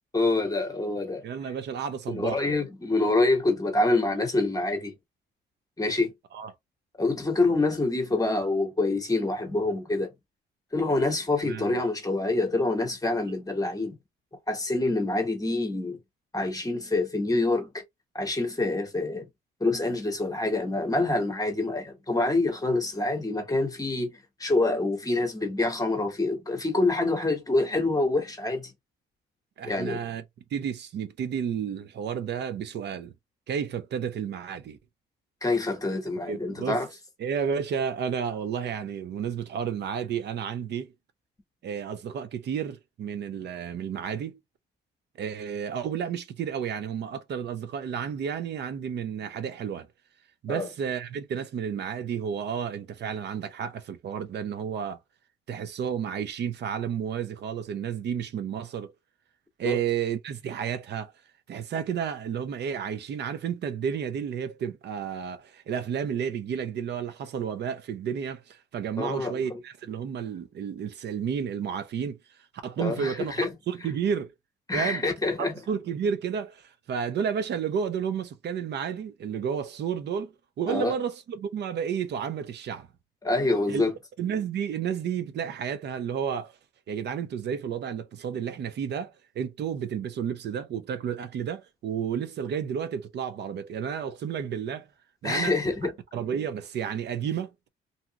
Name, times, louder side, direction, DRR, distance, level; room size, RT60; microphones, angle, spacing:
voice 1, 0.1-1.2 2.1-4.9 5.8-6.1 7.0-10.1 10.7-14.0 14.5-16.0 16.3-17.8 18.1-19.3 19.6-28.7 29.6-30.2 35.4-36.9 50.5-50.7 59.6-59.8 69.0-69.4 72.8-73.6 74.7-75.6 80.7-80.9 83.2-83.9 95.2-95.9, left 2 dB, 20° left, 1.0 m, -26 dB
voice 2, 1.2-2.6 6.3-6.5 11.4-11.8 29.6-30.2 30.5-33.1 33.5-34.8 36.3-36.8 37.2-40.9 41.6-44.4 45.2-49.9 50.4-55.0 55.5-58.9 59.6-61.1 61.5-72.2 72.6-74.3 74.7-75.0 75.7-82.9 83.7-83.8 84.2-86.5 86.9-94.9 95.2-95.6 96.1-97.7, right 7 dB, 60° right, 0.6 m, -31 dB
2.7 x 2.4 x 2.8 m
cardioid pair, 90°, 20 cm